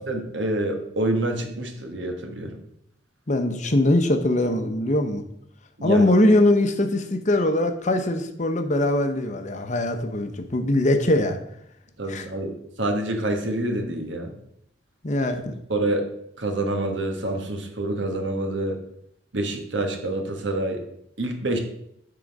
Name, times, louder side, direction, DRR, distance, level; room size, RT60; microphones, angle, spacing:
voice 1, 0.1-2.6 5.8-6.1 12.0-12.5 12.8-14.3 15.7-16.0 16.4-18.8 19.3-20.8 21.2-21.6, right 1 dB, 75° right, 4 dB, 1.3 m, -27 dB
voice 2, 3.3-5.2 5.8-11.4 12.1-12.3 15.0-15.6, left 1 dB, 40° left, 6 dB, 0.7 m, -21 dB
9.3 x 3.8 x 5.2 m, 0.75 s
head